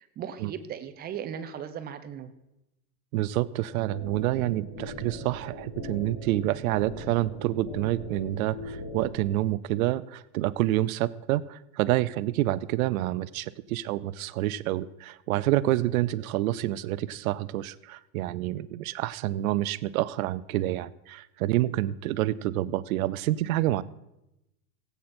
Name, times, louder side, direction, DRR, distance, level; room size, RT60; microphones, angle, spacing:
voice 1, 0.0-2.3, right 8 dB, 20° right, 10 dB, 0.7 m, -37 dB
voice 2, 3.1-23.8, right 15 dB, 75° right, 17 dB, 0.7 m, -28 dB
sound 1, 3.9-9.3, left 1 dB, 45° left, 3.7 m, -40 dB
17.0 x 8.3 x 4.4 m, 0.91 s
supercardioid pair, 145°, 43 cm